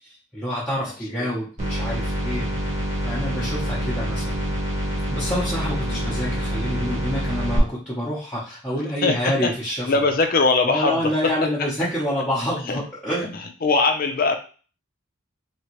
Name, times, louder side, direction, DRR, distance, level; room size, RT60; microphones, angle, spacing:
voice 1, 0.3-2.8 3.0-4.4 5.1-9.9 10.6-13.4, equal, 5° left, -11 dB, 0.9 m, -27 dB
sound 1, 1.6-7.6, right 1 dB, 35° right, 1.2 m, -26 dB
voice 2, 5.8-6.1 9.0-9.5 9.9-11.3 12.7-12.8 13.6-14.4, left 3 dB, 45° left, 5 dB, 0.6 m, -21 dB
3.2 x 2.9 x 3.0 m, 0.37 s
head